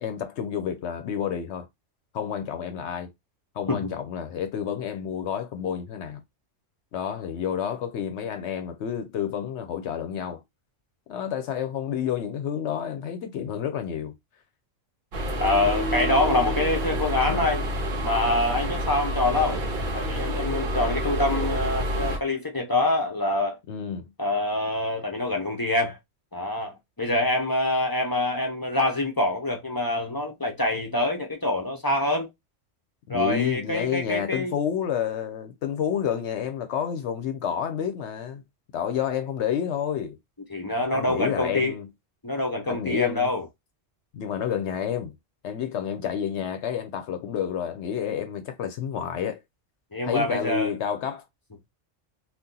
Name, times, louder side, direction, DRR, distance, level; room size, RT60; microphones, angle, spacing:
voice 1, 0.0-1.7 2.1-3.1 3.5-6.2 6.9-10.4 11.1-14.2 17.3-17.5 23.7-24.1 33.1-38.4 38.7-40.2 40.9-41.9 42.7-43.3 44.1-45.2 45.4-49.4 50.0-51.2, left 8 dB, 70° left, 0.8 m, -29 dB
sound 1, 15.1-22.2, equal, 50° right, 0.8 m, -28 dB
voice 2, 15.4-17.6 18.0-19.6 19.9-23.6 24.2-26.0 26.3-32.3 33.1-34.6 40.5-41.7 42.2-43.4 49.9-50.7, left 2 dB, 25° left, 0.5 m, -25 dB
2.7 x 2.4 x 3.7 m
omnidirectional pair, 1.3 m